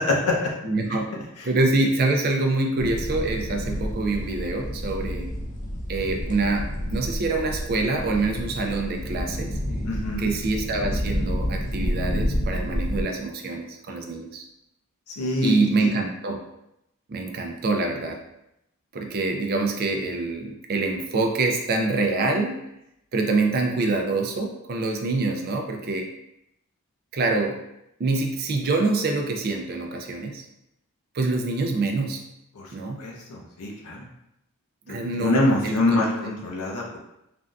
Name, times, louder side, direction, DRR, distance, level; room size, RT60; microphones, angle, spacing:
voice 1, 0.1-0.5 1.4-1.5 9.8-10.3 15.1-15.9 32.5-32.7 33.0-34.0 35.2-37.0, left 2 dB, 85° left, -2 dB, 0.6 m, -25 dB
voice 2, 0.6-1.1 1.4-5.3 5.9-9.6 10.2-14.4 15.4-16.4 17.1-18.2 18.9-22.6 23.1-26.1 27.1-27.6 28.0-30.4 31.1-32.2 32.7-33.0 34.9-36.0, right 3 dB, 45° right, 3 dB, 0.4 m, -25 dB
sound 1, 2.8-13.0, equal, 35° left, 0.4 m, -29 dB
3.4 x 2.5 x 2.3 m, 0.84 s
head